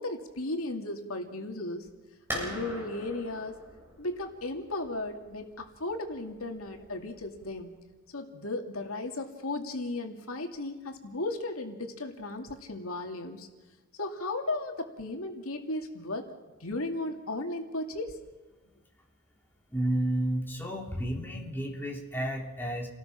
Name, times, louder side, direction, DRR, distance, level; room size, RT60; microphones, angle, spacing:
voice 1, 0.0-1.9 2.3-3.6 4.0-7.8 8.1-13.5 13.9-16.3 16.6-18.2, left 2 dB, 80° left, 3 dB, 2.6 m, -35 dB
sound 1, 2.3-7.8, equal, 10° right, 7.7 m, -42 dB
voice 2, 19.7-22.9, right 1 dB, 10° left, 0 dB, 3.3 m, -31 dB
29.5 x 19.5 x 5.9 m, 1.2 s
head